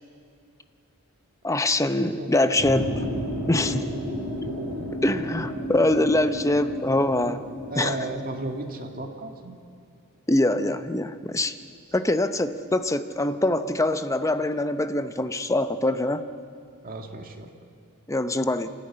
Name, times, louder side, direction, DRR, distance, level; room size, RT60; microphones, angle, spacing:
voice 1, 1.4-3.0 3.5-3.9 4.4-4.5 5.0-7.4 7.8-8.1 10.3-11.5 11.9-16.2 18.1-18.7, left 1 dB, 15° left, 10 dB, 0.8 m, -24 dB
voice 2, 2.0-2.5 4.5-4.6 7.7-9.6 16.8-17.5, right 2 dB, 40° right, 3 dB, 2.2 m, -34 dB
sound 1, 2.6-8.9, equal, 10° right, 7.3 m, -32 dB
27.0 x 13.5 x 9.9 m, 2.5 s
head